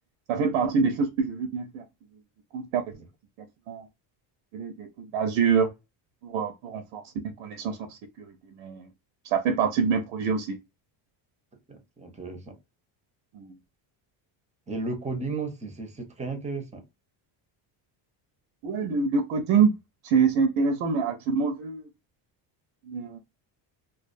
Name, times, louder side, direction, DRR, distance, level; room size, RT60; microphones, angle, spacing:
voice 1, 0.3-1.8 2.5-2.8 3.7-3.9 4.5-5.7 6.2-7.0 7.4-8.9 9.3-10.6 13.3-13.6 18.6-19.8 20.0-21.8 22.9-23.2, right 5 dB, 85° right, 0.7 m, -26 dB
voice 2, 11.7-12.6 14.7-16.8, right 3 dB, 15° right, 0.6 m, -34 dB
2.3 x 2.3 x 2.5 m
cardioid pair, 130°, 49 cm